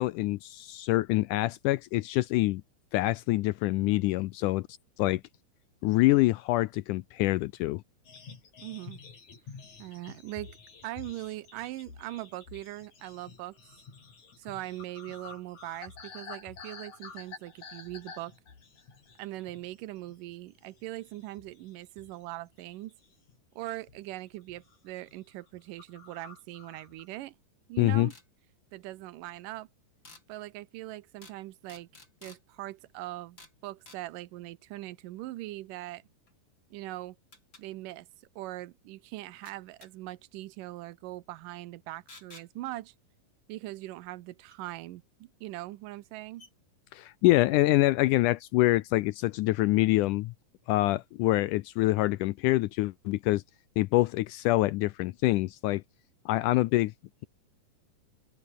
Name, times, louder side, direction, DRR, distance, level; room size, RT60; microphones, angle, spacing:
voice 1, 0.0-2.6 2.9-4.7 5.0-5.2 5.8-7.8 27.8-28.1 46.9-50.3 50.7-53.4 53.8-55.8 56.3-56.9, left 18 dB, 80° left, 2.0 m, -25 dB
sound 1, 8.0-19.8 20.1-20.3 20.8-22.3 22.6-23.4 23.9-24.1 24.4-24.8 25.1-25.2 25.4-25.5 25.8-27.2, left 5 dB, 55° left, 5.7 m, -49 dB
voice 2, 8.6-9.0 9.8-10.6 10.8-13.8 14.4-18.3 19.2-22.9 23.6-27.4 27.7-28.1 28.7-29.7 30.3-31.9 32.2-36.0 36.7-37.2 37.6-38.1 38.4-42.9 43.5-46.5, right 16 dB, 75° right, 2.4 m, -41 dB
sound 2, 28.1-28.3 30.0-30.2 31.2-31.4 31.7-32.4 33.4-33.6 33.9-34.0 36.3-36.4 37.3-37.6 39.5-39.9 42.1-42.5 44.5-44.6 45.6-45.7 46.0-46.1 46.4-46.5, left 3 dB, 30° left, 6.0 m, -52 dB
open air
omnidirectional pair, 3.9 m